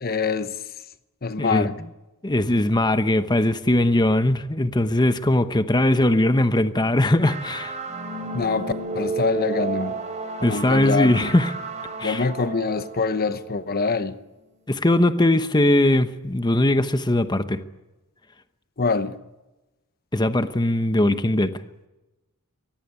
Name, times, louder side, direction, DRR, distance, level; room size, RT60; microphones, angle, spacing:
voice 1, 0.0-0.6 1.2-1.8 8.3-10.0 10.5-11.3 12.0-14.2 18.8-19.2, left 4 dB, 45° left, 1.0 m, -25 dB
voice 2, 1.4-1.7 2.2-7.7 10.4-11.5 12.0-12.3 14.7-17.6 20.1-21.5, left 1 dB, 20° left, 1.0 m, -20 dB
sound 1, 7.2-14.1, right 3 dB, 30° right, 4.4 m, -32 dB
23.5 x 18.0 x 9.5 m
head